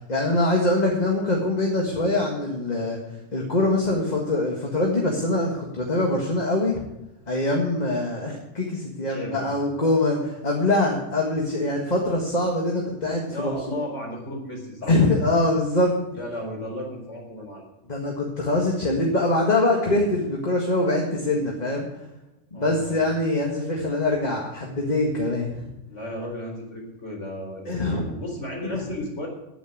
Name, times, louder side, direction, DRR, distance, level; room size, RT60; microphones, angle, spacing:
voice 1, 0.1-3.0 3.3-6.8 7.3-13.8 14.9-15.9 17.9-21.9 22.5-25.7 27.7-28.1 28.6-28.8, left 2 dB, 30° left, -1 dB, 1.8 m, -23 dB
voice 2, 9.1-9.4 13.3-14.9 16.1-17.6 22.5-23.1 25.9-29.3, left 1 dB, 55° left, 0 dB, 4.5 m, -34 dB
9.6 x 8.9 x 9.5 m, 0.93 s
omnidirectional pair, 1.5 m